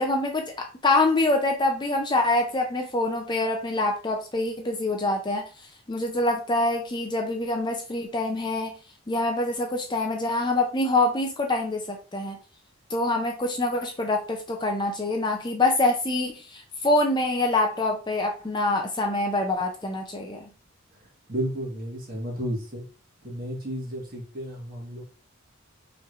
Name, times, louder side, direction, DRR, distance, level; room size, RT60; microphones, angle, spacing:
voice 1, 0.0-5.5 5.9-8.7 9.1-12.4 12.9-20.5, left 2 dB, 20° left, 3 dB, 0.5 m, -25 dB
voice 2, 21.3-22.8 23.2-25.0, equal, 40° right, -2 dB, 1.7 m, -32 dB
5.3 x 3.2 x 2.5 m, 0.34 s
head